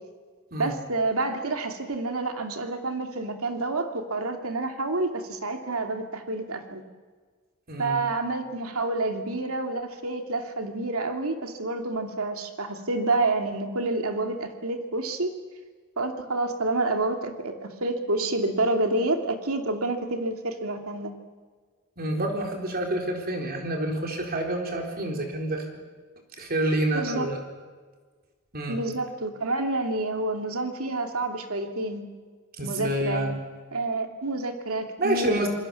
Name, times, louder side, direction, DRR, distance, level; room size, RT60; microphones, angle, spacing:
voice 1, 0.6-6.8 7.8-15.3 16.0-21.1 26.9-27.3 28.7-32.0 32.6-33.3 33.7-35.5, right 2 dB, 75° right, 5 dB, 2.6 m, -28 dB
voice 2, 7.7-8.0 22.0-25.7 26.4-27.4 28.5-28.8 32.6-33.4 35.0-35.5, right 1 dB, 45° right, 2 dB, 4.2 m, -28 dB
27.0 x 21.0 x 7.1 m, 1.5 s
head